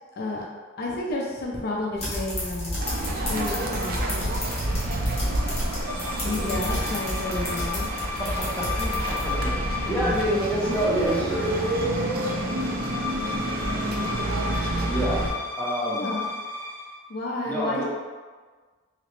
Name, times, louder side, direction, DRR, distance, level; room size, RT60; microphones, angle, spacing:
voice 1, 0.2-0.5 0.8-4.4 6.2-8.0 9.8-10.3 15.9-16.3 17.1-17.8, left 2 dB, 50° left, -2 dB, 0.5 m, -32 dB
sound 1, 1.9-9.5, left 1 dB, 30° left, 1.0 m, -32 dB
sound 2, 2.8-15.3, right 1 dB, 50° right, 0.4 m, -29 dB
sound 3, 4.5-17.0, left 4 dB, 85° right, 1.2 m, -35 dB
voice 2, 6.2-6.6 8.2-11.6 14.9-15.3 15.6-16.1 17.5-17.8, equal, 5° left, -7 dB, 0.7 m, -28 dB
3.0 x 2.8 x 3.0 m, 1.4 s
head